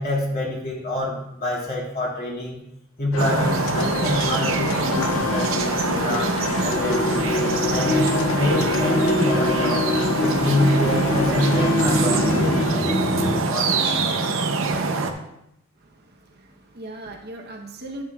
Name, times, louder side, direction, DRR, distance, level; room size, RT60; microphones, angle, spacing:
voice 1, 0.0-2.6 3.0-6.3 6.6-8.0 8.4-9.8 10.2-14.1, left 1 dB, 50° left, -4 dB, 2.5 m, -27 dB
sound 1, 3.1-12.8, left 6 dB, 80° left, 0.4 m, -29 dB
sound 2, 3.2-15.1, right 3 dB, 80° right, 0.7 m, -24 dB
sound 3, 6.7-13.4, left 2 dB, 30° left, 0.5 m, -25 dB
voice 2, 15.7-18.0, right 1 dB, 55° right, 2 dB, 0.9 m, -39 dB
10.5 x 7.5 x 2.4 m, 0.82 s
head